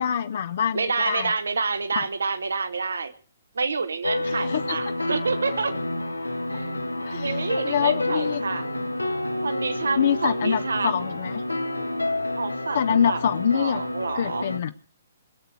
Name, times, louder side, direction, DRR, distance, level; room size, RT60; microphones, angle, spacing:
voice 1, 0.0-1.3 2.0-2.1 4.3-4.6 7.0-7.4 7.6-8.4 10.0-11.4 12.7-13.8 14.1-14.7, left 8 dB, 50° left, 11 dB, 0.7 m, -25 dB
voice 2, 0.7-3.1 3.5-5.7 6.5-6.7 7.1-8.7 9.4-11.1 12.4-13.2 13.5-14.5, right 4 dB, 65° right, 10 dB, 1.1 m, -28 dB
sound 1, 4.0-14.6, left 1 dB, 80° left, 1.4 m, -29 dB
22.0 x 8.1 x 7.7 m, 0.44 s
figure-of-eight pair, 125°, 0 cm